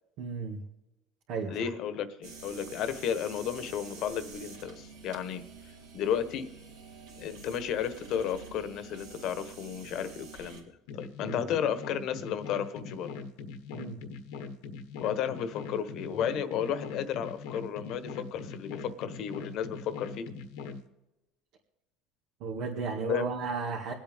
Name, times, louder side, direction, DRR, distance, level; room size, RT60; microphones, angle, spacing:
voice 1, 0.2-0.6 1.3-1.7 11.2-11.4 13.7-14.0 22.4-23.9, right 4 dB, 65° right, -1 dB, 2.0 m, -34 dB
voice 2, 1.5-5.4 5.9-6.5 7.2-13.1 15.0-20.3 23.1-23.3, left 8 dB, 55° left, 11 dB, 1.2 m, -33 dB
sound 1, 2.2-10.6, right 4 dB, 90° right, 3.7 m, -48 dB
sound 2, 10.9-20.8, left 5 dB, 85° left, 1.3 m, -41 dB
25.0 x 8.5 x 3.6 m, 0.99 s
cardioid pair, 130°, 0 cm